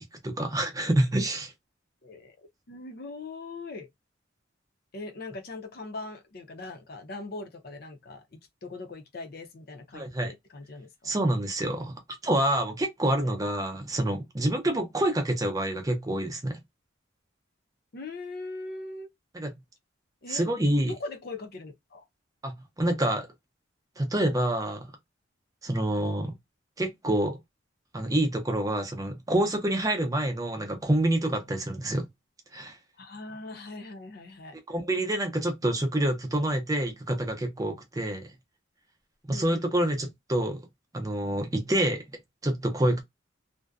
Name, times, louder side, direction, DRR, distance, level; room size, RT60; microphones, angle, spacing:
voice 1, 0.2-1.5 9.9-10.3 11.0-16.6 19.3-19.5 20.3-20.9 22.4-23.3 24.0-24.9 25.6-26.3 26.8-27.4 27.9-32.1 32.5-32.8 34.7-38.3 39.3-40.6 40.9-42.1 42.4-43.0, right 1 dB, 15° right, 0.5 m, -27 dB
voice 2, 2.0-2.4 2.7-3.9 4.9-11.1 13.2-13.4 17.9-19.1 20.2-22.1 26.2-26.4 33.0-34.6 38.1-38.2 39.3-40.1, left 2 dB, 50° left, 0.5 m, -41 dB
2.6 x 2.1 x 2.3 m
head